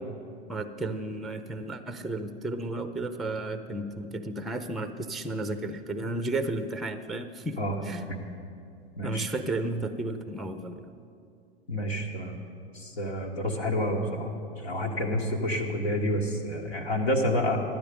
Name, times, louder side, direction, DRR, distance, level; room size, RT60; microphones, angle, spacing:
voice 1, 0.5-8.0 9.0-10.9, right 2 dB, ahead, 10 dB, 0.5 m, -33 dB
voice 2, 11.7-12.4 12.7-17.6, left 1 dB, 85° left, -1 dB, 1.6 m, -29 dB
12.5 x 9.4 x 5.2 m, 2.4 s
hypercardioid pair, 95°, 31 cm